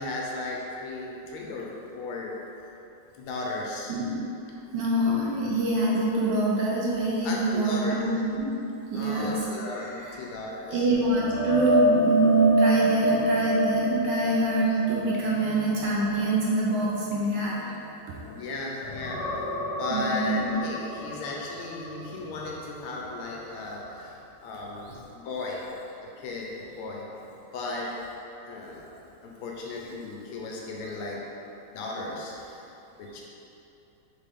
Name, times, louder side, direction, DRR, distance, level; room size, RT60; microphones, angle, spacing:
voice 1, 0.0-2.4 3.1-3.9 7.2-8.0 8.9-10.9 18.3-19.5 19.8-25.6 26.2-27.1 27.5-28.0 28.5-28.8 29.2-31.3 31.7-32.6 33.0-33.2, left 2 dB, 85° left, -2 dB, 1.5 m, -35 dB
voice 2, 4.7-8.5 8.9-9.4 10.7-17.6 19.9-20.5, right 2 dB, 70° right, -5 dB, 1.1 m, -25 dB
sound 1, 11.0-18.4 18.8-22.7 23.0-23.3 26.6-26.7, equal, 70° left, 0.7 m, -29 dB
4.1 x 3.7 x 3.5 m, 2.8 s
omnidirectional pair, 2.4 m